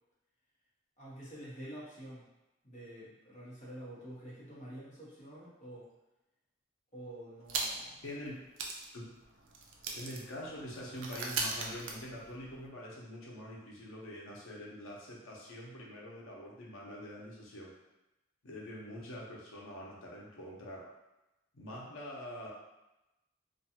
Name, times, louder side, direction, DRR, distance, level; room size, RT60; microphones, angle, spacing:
voice 1, 1.0-2.3 2.6-5.9 6.9-8.0, right 1 dB, 35° left, -8 dB, 0.9 m, -48 dB
sound 1, 7.5-8.0 8.3-8.4 8.6-12.7, right 3 dB, 70° right, 0.4 m, -39 dB
voice 2, 8.0-8.4 8.9-9.1 9.9-17.7 18.4-20.9 21.5-22.5, equal, 90° left, -4 dB, 0.7 m, -45 dB
2.5 x 2.3 x 2.8 m, 0.97 s
head